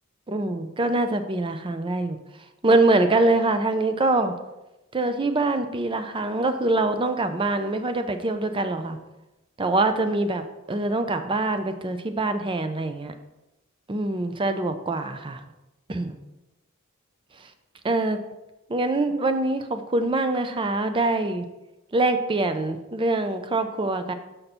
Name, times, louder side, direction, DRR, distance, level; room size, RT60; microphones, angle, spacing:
voice 1, 0.3-2.2 2.6-4.3 4.9-9.0 9.6-13.1 13.9-15.4 15.9-16.2 17.8-18.2 18.7-21.4 21.9-24.1, right 2 dB, 25° right, 9 dB, 0.5 m, -24 dB
6.6 x 5.8 x 4.2 m, 0.97 s
head